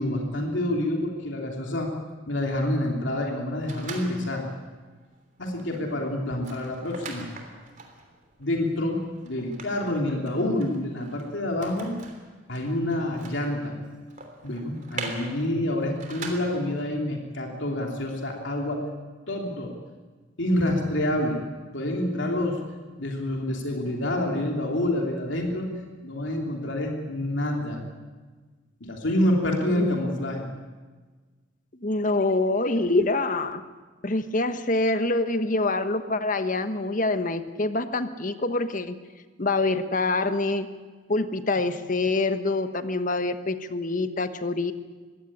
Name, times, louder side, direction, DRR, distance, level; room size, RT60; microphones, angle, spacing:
voice 1, 0.0-1.9 2.3-4.4 5.4-7.3 8.4-11.9 12.5-13.7 14.4-18.8 19.3-19.7 20.4-21.4 21.7-22.6 23.0-25.7 26.0-27.8 28.8-30.5, left 1 dB, 70° left, 1 dB, 3.2 m, -27 dB
sound 1, 3.6-4.6 5.0-5.2 5.5-16.8, right 3 dB, 40° right, 3.3 m, -42 dB
voice 2, 31.8-33.6 34.0-39.0 39.4-40.7 41.1-44.7, left 2 dB, 40° left, 10 dB, 1.2 m, -25 dB
22.0 x 16.5 x 9.9 m, 1.4 s
head